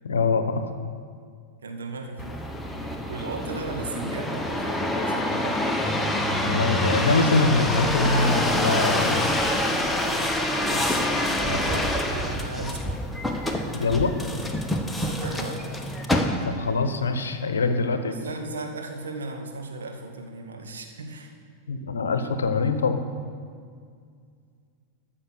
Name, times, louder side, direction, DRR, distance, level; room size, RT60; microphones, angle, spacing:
voice 1, 0.0-0.6 6.4-9.6 13.7-14.1 16.5-18.2 21.7-23.0, left 3 dB, 75° left, 9 dB, 0.8 m, -24 dB
voice 2, 1.6-2.4 3.0-5.5 10.6-13.0 15.0-15.6 18.1-21.3, right 3 dB, 75° right, 3 dB, 1.3 m, -36 dB
sound 1, 2.2-16.7 17.3-17.9, left 1 dB, 5° left, 1.0 m, -26 dB
13.5 x 5.7 x 6.6 m, 2.1 s
figure-of-eight pair, 90°, 0 cm